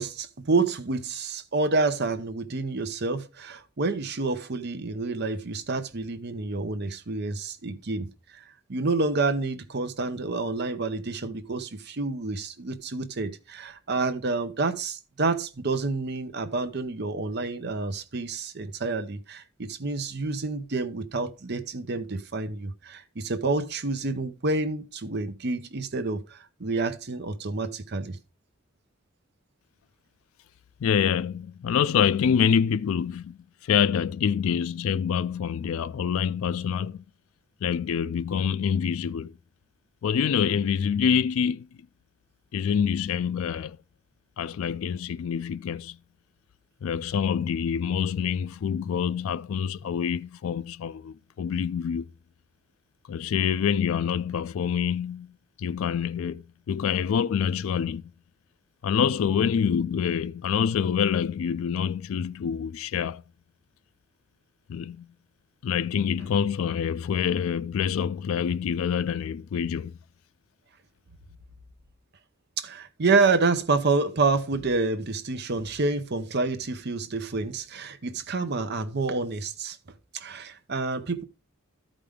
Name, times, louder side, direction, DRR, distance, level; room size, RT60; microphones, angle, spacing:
voice 1, 0.0-8.1 8.3-8.4 8.7-28.2 72.6-79.8 80.1-81.2, right 3 dB, 50° right, 0.8 m, -28 dB
voice 2, 30.8-33.4 33.6-37.0 37.6-39.3 40.0-41.7 42.5-43.8 44.4-46.0 46.8-52.1 53.1-55.3 55.6-58.0 58.8-63.2 64.7-65.1 65.6-69.9, left 7 dB, 80° left, 0.3 m, -26 dB
13.0 x 5.0 x 3.6 m
head